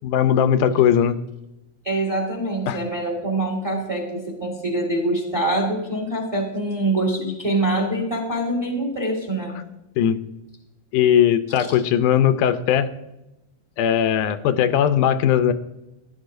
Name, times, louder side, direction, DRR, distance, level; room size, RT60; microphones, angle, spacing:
voice 1, 0.0-1.2 2.7-2.8 10.0-10.2 10.9-12.9 13.8-15.5, left 9 dB, 85° left, 10 dB, 2.1 m, -19 dB
voice 2, 1.8-9.5, right 1 dB, 15° right, 1 dB, 1.4 m, -24 dB
15.0 x 11.5 x 2.6 m, 0.93 s
omnidirectional pair, 3.6 m